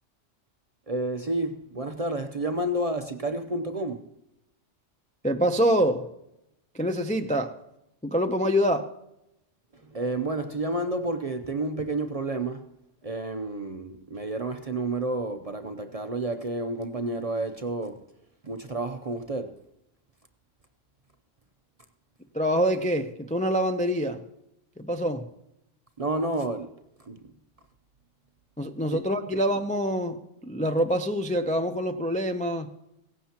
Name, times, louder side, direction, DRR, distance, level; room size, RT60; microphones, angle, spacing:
voice 1, 0.9-4.1 9.7-12.7 13.0-18.0 18.4-19.6 26.0-26.7 27.0-27.2 28.9-29.0 29.3-29.4, right 2 dB, 40° right, 0.6 m, -30 dB
voice 2, 5.2-6.1 6.7-7.6 8.0-8.9 22.3-24.2 24.8-25.3 28.6-32.7, equal, 10° left, 0.3 m, -25 dB
17.0 x 15.0 x 2.9 m
omnidirectional pair, 1.3 m